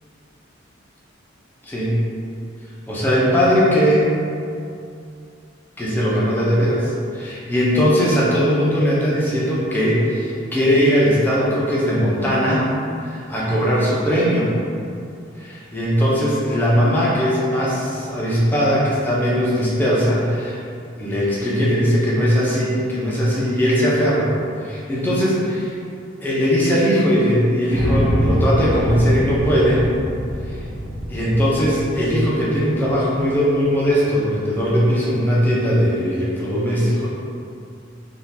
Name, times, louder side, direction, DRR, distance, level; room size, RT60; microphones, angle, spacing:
voice 1, 1.7-2.0 2.9-4.1 5.8-12.7 13.0-14.5 15.4-20.6 21.0-24.3 24.6-25.7 26.2-29.9 30.5-30.6 31.1-37.1, equal, 10° left, -7 dB, 0.6 m, -19 dB
sound 1, 27.7-33.8, equal, 60° right, 0.9 m, -24 dB
3.6 x 2.4 x 2.7 m, 2.4 s
head